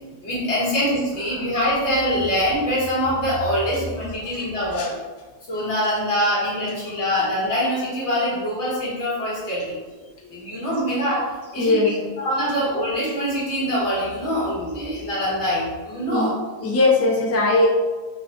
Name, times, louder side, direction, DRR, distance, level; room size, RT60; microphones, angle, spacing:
voice 1, 0.2-5.0 5.5-9.8 10.3-11.8 12.2-16.4, equal, 90° left, -7 dB, 1.7 m, -24 dB
voice 2, 4.6-4.9 11.6-12.1 16.1-16.3 16.6-17.7, left 2 dB, 25° left, -1 dB, 0.3 m, -20 dB
4.4 x 2.1 x 3.0 m, 1.3 s
omnidirectional pair, 1.1 m